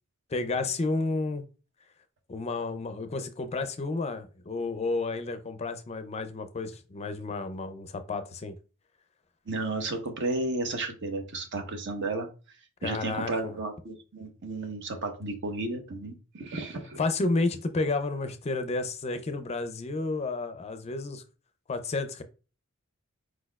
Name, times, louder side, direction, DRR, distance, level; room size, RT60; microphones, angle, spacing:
voice 1, 0.3-1.4 2.3-8.5 12.8-13.6 17.0-21.2 21.7-22.2, left 3 dB, 30° left, 9 dB, 0.4 m, -31 dB
voice 2, 9.5-12.3 12.8-17.0, right 2 dB, 60° right, 6 dB, 0.9 m, -33 dB
4.6 x 4.2 x 2.3 m, 0.34 s
head